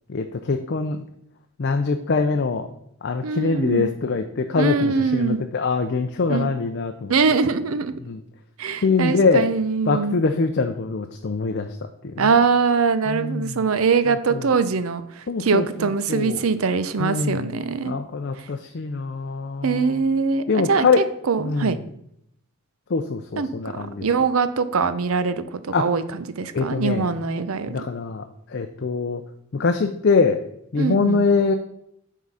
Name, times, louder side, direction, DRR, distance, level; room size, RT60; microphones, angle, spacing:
voice 1, 0.1-1.0 1.6-2.7 3.0-7.1 8.1-8.2 8.8-9.5 9.9-11.8 12.0-12.3 13.1-13.5 14.3-14.4 15.3-15.6 16.1-16.4 17.0-17.5 17.8-19.9 20.5-21.0 21.4-21.7 22.9-24.1 25.7-25.9 26.5-27.1 27.7-28.2 28.5-29.2 29.5-30.4 30.7-31.5, left 4 dB, 55° left, 6 dB, 0.5 m, -23 dB
voice 2, 3.2-3.9 4.6-5.4 6.3-6.5 7.1-8.0 8.6-10.2 12.2-17.9 18.4-18.5 19.6-21.8 23.4-27.9 30.8-31.3, right 5 dB, 85° right, 12 dB, 0.6 m, -23 dB
9.4 x 3.7 x 5.6 m, 0.74 s
head